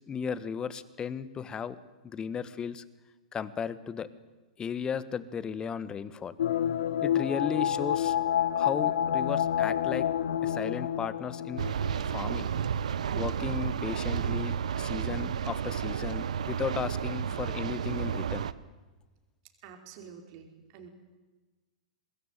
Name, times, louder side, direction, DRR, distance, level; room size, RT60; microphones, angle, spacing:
voice 1, 0.1-1.8 2.0-2.8 3.3-4.1 4.6-6.3 7.0-8.2 8.5-10.1 10.4-11.6 12.1-12.5 13.1-18.5, left 7 dB, 20° left, 16 dB, 1.5 m, -35 dB
sound 1, 6.4-12.3 12.6-12.7, left 10 dB, 70° left, 1.1 m, -28 dB
sound 2, 11.6-18.5, right 8 dB, 70° right, 1.0 m, -31 dB
voice 2, 19.6-20.9, right 7 dB, 50° right, 4 dB, 4.9 m, -48 dB
24.5 x 21.0 x 9.3 m, 1.2 s
hypercardioid pair, 110°, 4 cm